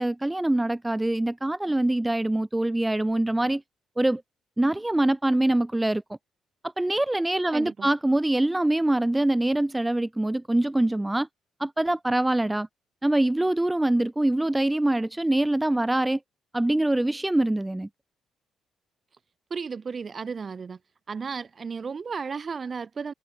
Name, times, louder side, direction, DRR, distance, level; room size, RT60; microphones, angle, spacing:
voice 1, 0.0-3.6 4.0-4.2 4.6-6.0 6.8-11.3 11.6-12.7 13.0-16.2 16.5-17.9, right 1 dB, 10° right, 0.3 m, -24 dB
voice 2, 7.5-7.9 19.5-20.8 21.1-23.1, right 5 dB, 40° right, 3.1 m, -34 dB
cardioid pair, 90°, 0 cm